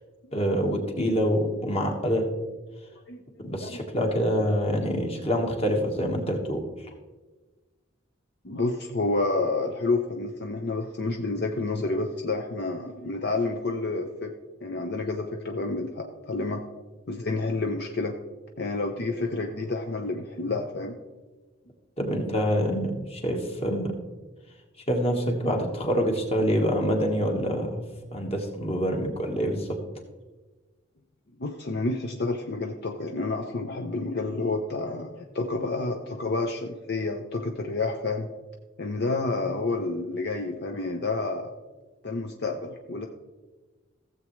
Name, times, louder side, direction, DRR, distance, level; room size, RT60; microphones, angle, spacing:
voice 1, 0.3-2.3 3.4-6.6 22.0-23.9 24.9-27.8 28.1-29.8, equal, 30° left, 2 dB, 1.5 m, -26 dB
voice 2, 8.4-14.3 14.6-16.6 17.1-18.1 18.6-21.0 31.4-38.3 38.8-41.5 42.0-43.1, left 3 dB, 55° left, 3 dB, 0.7 m, -29 dB
15.5 x 7.5 x 3.2 m, 1.2 s
head